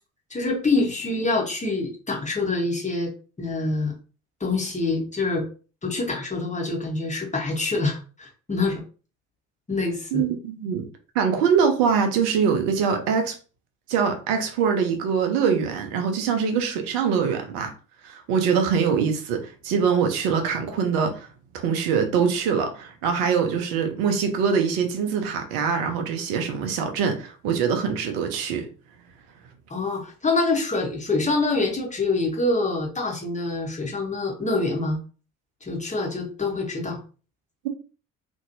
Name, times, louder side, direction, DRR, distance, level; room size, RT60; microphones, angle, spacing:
voice 1, 0.3-3.1 3.4-3.9 4.4-5.5 5.8-8.8 9.7-10.3 29.7-35.0 35.6-37.0, left 3 dB, 20° left, 1.2 m, -25 dB
voice 2, 10.1-10.9 11.1-13.4 13.9-17.7 18.0-21.3 21.5-28.7, right 6 dB, 65° right, 0.8 m, -23 dB
3.0 x 2.7 x 2.7 m
figure-of-eight pair, 50°, 40 cm